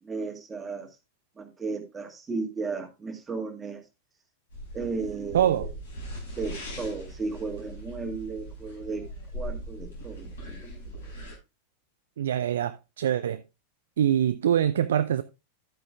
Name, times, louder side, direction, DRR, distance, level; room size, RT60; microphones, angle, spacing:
voice 1, 0.0-0.9 1.4-3.8 4.7-5.7 6.4-9.1 9.3-11.1, right 4 dB, 15° right, 1.8 m, -35 dB
sound 1, 4.5-11.4, equal, 65° left, 5.5 m, -40 dB
voice 2, 5.3-5.7 12.2-13.4 14.0-15.2, right 10 dB, 60° right, 0.4 m, -24 dB
12.0 x 8.6 x 2.4 m
figure-of-eight pair, 90°, 0 cm